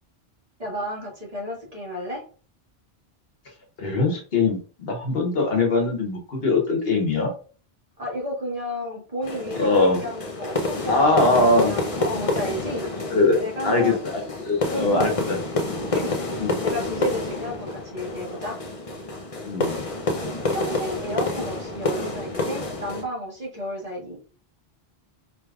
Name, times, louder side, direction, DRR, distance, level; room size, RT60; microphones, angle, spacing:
voice 1, 0.6-2.2 8.0-12.9 13.4-14.0 14.7-15.3 15.9-18.6 20.5-24.2, equal, 35° right, -3 dB, 1.5 m, -32 dB
voice 2, 3.8-7.3 9.5-10.0 10.9-11.7 13.1-13.4 13.6-13.9 14.4-15.4 16.4-16.5 19.4-19.8, left 3 dB, 70° left, 1 dB, 1.3 m, -21 dB
sound 1, 9.2-23.0, left 2 dB, 40° left, 0.7 m, -28 dB
4.8 x 3.0 x 2.3 m, 0.39 s
omnidirectional pair, 1.1 m